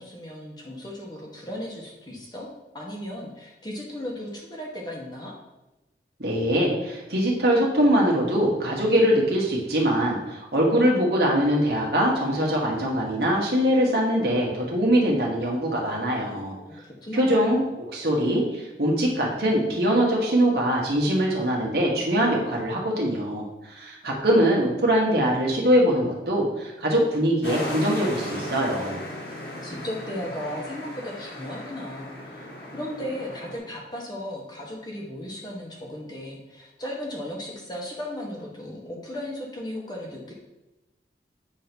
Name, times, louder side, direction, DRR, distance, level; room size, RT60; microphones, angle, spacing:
voice 1, 0.0-5.4 16.6-17.6 29.6-32.5 32.7-40.3, left 1 dB, 25° left, -2 dB, 1.2 m, -36 dB
voice 2, 6.2-16.5 17.1-17.6 17.9-29.0, equal, 65° right, -2 dB, 1.6 m, -22 dB
sound 1, 27.4-33.6, left 1 dB, 75° left, 2.4 m, -36 dB
8.2 x 3.1 x 5.3 m, 0.99 s
head